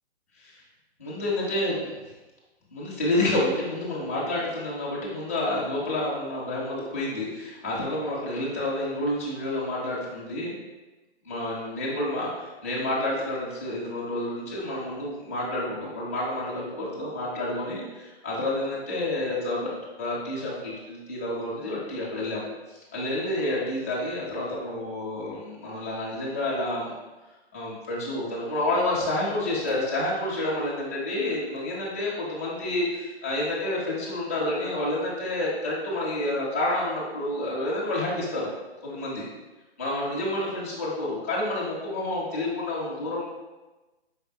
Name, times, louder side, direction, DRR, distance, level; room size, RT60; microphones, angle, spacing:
voice 1, 1.0-1.8 2.7-10.5 11.2-19.7 20.0-26.9 27.5-38.5 38.8-39.3 39.8-43.2, left 1 dB, 15° left, -6 dB, 0.4 m, -29 dB
4.8 x 3.5 x 2.2 m, 1.1 s
hypercardioid pair, 155°, 33 cm